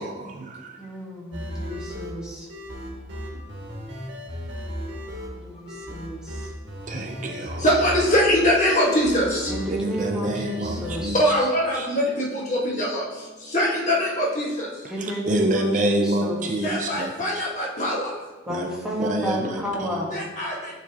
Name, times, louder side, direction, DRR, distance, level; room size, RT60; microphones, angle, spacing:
voice 1, 0.0-0.8 3.3-3.4 6.8-7.7 9.7-11.3 11.7-11.9 15.0-17.5 18.5-18.7 19.0-20.0, right 1 dB, 40° right, 3 dB, 0.5 m, -27 dB
voice 2, 0.8-2.5 5.4-6.5 9.5-11.5 14.9-16.9 18.5-20.1, equal, 5° right, -5 dB, 1.3 m, -32 dB
sound 1, 1.3-11.1, equal, 75° right, 1.6 m, -35 dB
voice 3, 7.6-9.6 11.1-13.0 13.5-14.7 16.6-18.1 20.1-20.6, equal, 40° left, -3 dB, 1.4 m, -22 dB
12.0 x 4.1 x 2.8 m, 1.2 s
head